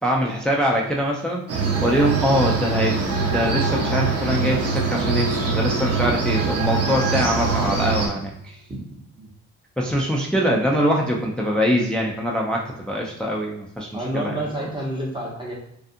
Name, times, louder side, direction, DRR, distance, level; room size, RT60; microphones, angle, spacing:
voice 1, 0.0-8.6 9.8-13.9 14.1-14.5, equal, 5° left, -1 dB, 0.3 m, -23 dB
sound 1, 1.5-8.1, right 4 dB, 55° right, 0.7 m, -23 dB
sound 2, 3.1-7.6 8.0-8.1, left 4 dB, 60° left, 0.7 m, -36 dB
voice 2, 13.9-15.5, right 1 dB, 15° right, -4 dB, 0.8 m, -28 dB
2.6 x 2.4 x 2.5 m, 0.75 s
cardioid pair, 90°, 30 cm